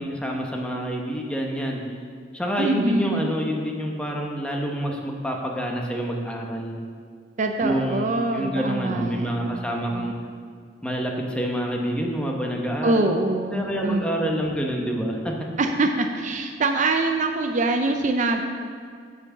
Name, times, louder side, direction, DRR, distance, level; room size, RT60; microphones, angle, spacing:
voice 1, 0.0-1.8 2.3-6.8 7.6-10.2 10.8-13.1 13.5-15.4, equal, 5° left, 0 dB, 0.9 m, -27 dB
voice 2, 2.6-3.3 7.4-10.3 12.8-14.6 15.6-18.4, right 2 dB, 45° right, 5 dB, 0.5 m, -25 dB
8.3 x 4.6 x 7.2 m, 2.1 s
head